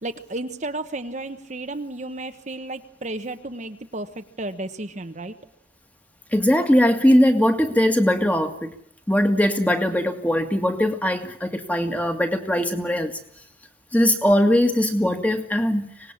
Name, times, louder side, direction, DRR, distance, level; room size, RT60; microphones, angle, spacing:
voice 1, 0.0-5.3, right 2 dB, 40° right, 7 dB, 1.1 m, -33 dB
voice 2, 6.3-8.7 9.1-13.2 13.9-15.9, equal, 10° left, 6 dB, 2.0 m, -20 dB
25.0 x 19.5 x 7.3 m, 0.67 s
head